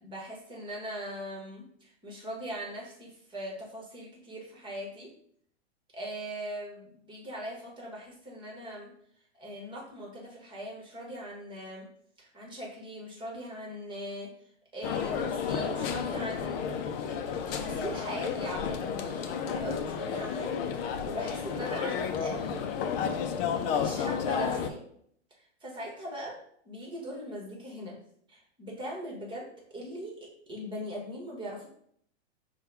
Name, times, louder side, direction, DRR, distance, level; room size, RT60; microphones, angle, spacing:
voice 1, 0.0-5.1 5.9-8.9 9.4-11.9 12.2-14.3 14.7-16.7 17.1-17.2 17.5-23.3 23.7-24.8 25.4-26.4 26.6-27.9 28.3-30.2 30.5-31.7, equal, 15° right, -2 dB, 1.3 m, -40 dB
sound 1, 14.8-24.7, left 7 dB, 55° left, 0.6 m, -32 dB
5.4 x 2.3 x 3.4 m, 0.65 s
hypercardioid pair, 125°, 35 cm